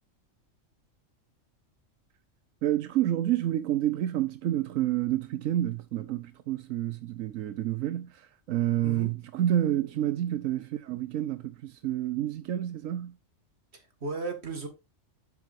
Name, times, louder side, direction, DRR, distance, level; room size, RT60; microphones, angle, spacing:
voice 1, 2.6-13.1, right 12 dB, 85° right, 1.1 m, -29 dB
voice 2, 13.7-14.7, right 4 dB, 55° right, 2.4 m, -35 dB
11.0 x 7.8 x 2.6 m
omnidirectional pair, 1.3 m